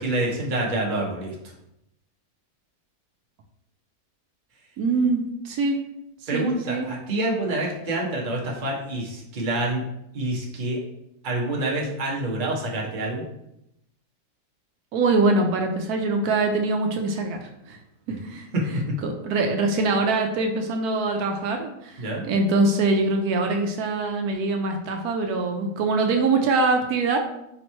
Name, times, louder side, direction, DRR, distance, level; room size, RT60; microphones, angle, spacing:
voice 1, 0.0-1.5 6.3-9.8 10.1-10.8 11.2-13.2 22.0-22.2, right 2 dB, 40° right, -2 dB, 0.9 m, -27 dB
voice 2, 4.8-5.8 6.3-6.9 14.9-17.8 18.2-27.2, right 3 dB, 80° right, 4 dB, 1.1 m, -23 dB
3.5 x 3.0 x 4.2 m, 0.81 s
omnidirectional pair, 1.6 m